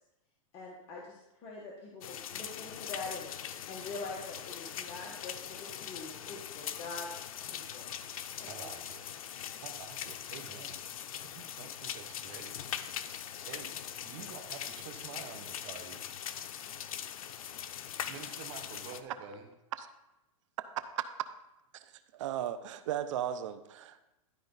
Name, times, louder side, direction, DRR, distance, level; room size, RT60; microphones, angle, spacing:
voice 1, 0.5-3.3 3.6-7.1 7.4-7.9 8.4-8.7, left 3 dB, 35° left, -4 dB, 1.5 m, -44 dB
sound 1, 2.0-19.0, left 9 dB, 85° left, 0.6 m, -41 dB
voice 2, 8.5-9.0 9.6-10.8 11.3-12.5 13.4-13.7 14.0-16.0 17.9-19.5, right 7 dB, 50° right, 5 dB, 1.0 m, -48 dB
voice 3, 22.1-24.0, right 10 dB, 65° right, 12 dB, 0.7 m, -36 dB
12.0 x 5.0 x 4.0 m, 0.93 s
hypercardioid pair, 140°, 17 cm